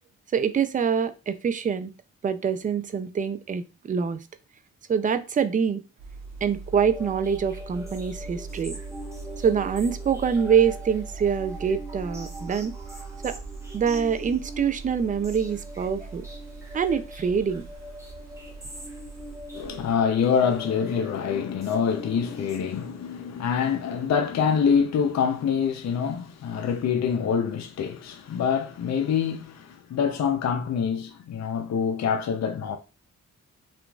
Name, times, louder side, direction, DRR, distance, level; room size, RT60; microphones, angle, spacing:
voice 1, 0.3-1.9 2.2-4.2 4.9-5.8 6.4-8.8 9.4-12.7 13.2-13.4 13.7-16.2 16.7-17.7, right 7 dB, 25° right, 0.3 m, -25 dB
sound 1, 6.0-19.9, right 4 dB, 50° right, 1.0 m, -41 dB
sound 2, 6.7-23.2, equal, 10° right, 1.0 m, -43 dB
voice 2, 19.5-32.8, left 7 dB, 55° left, 0.5 m, -25 dB
2.9 x 2.5 x 2.3 m
supercardioid pair, 50°, 33 cm